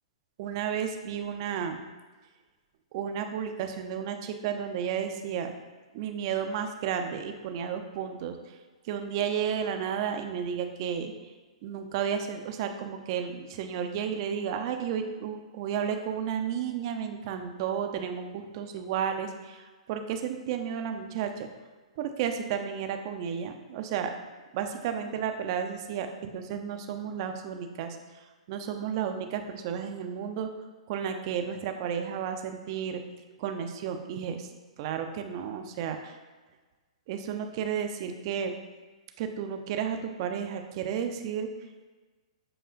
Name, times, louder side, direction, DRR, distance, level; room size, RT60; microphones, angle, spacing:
voice 1, 0.4-1.8 2.9-5.5 5.9-8.3 8.8-11.1 11.6-21.5 22.0-24.1 24.5-28.0 28.5-30.5 30.9-33.0 33.4-34.5 34.8-36.2 37.1-38.5 39.2-41.5, right 8 dB, 45° right, 6 dB, 0.7 m, -32 dB
7.9 x 4.9 x 2.5 m, 1.3 s
hypercardioid pair, 145°, 4 cm